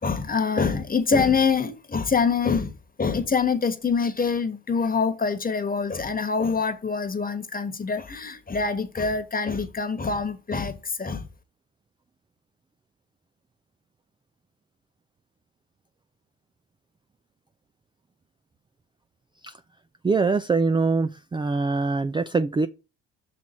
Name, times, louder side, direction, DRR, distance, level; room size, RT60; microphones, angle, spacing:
voice 1, 0.0-11.3, left 5 dB, 25° left, 1.4 m, -25 dB
voice 2, 20.0-22.7, right 4 dB, 15° right, 0.4 m, -23 dB
6.1 x 4.5 x 5.3 m
supercardioid pair, 75°, 36 cm